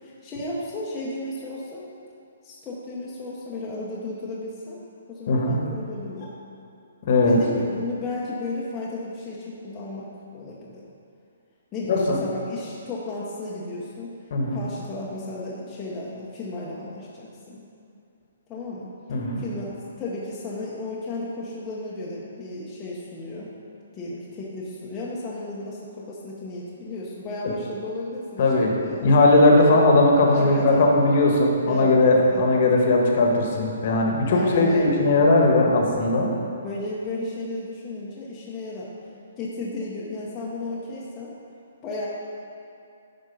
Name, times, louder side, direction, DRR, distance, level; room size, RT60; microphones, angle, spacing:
voice 1, 0.0-1.9 2.4-4.8 5.1-6.3 7.3-10.8 11.7-14.1 14.5-17.6 18.5-18.9 19.4-23.5 23.9-28.5 28.8-29.1 30.3-30.9 31.7-32.6 34.2-35.1 36.6-38.9 39.4-41.3 41.8-42.1, left 2 dB, 15° left, -7 dB, 0.9 m, -34 dB
voice 2, 5.3-5.6 7.0-7.4 11.9-12.2 14.3-14.6 19.1-19.4 28.4-28.7 29.0-36.3, left 2 dB, 40° left, 0 dB, 1.3 m, -18 dB
11.0 x 4.3 x 5.4 m, 2.5 s
hypercardioid pair, 170°, 0 cm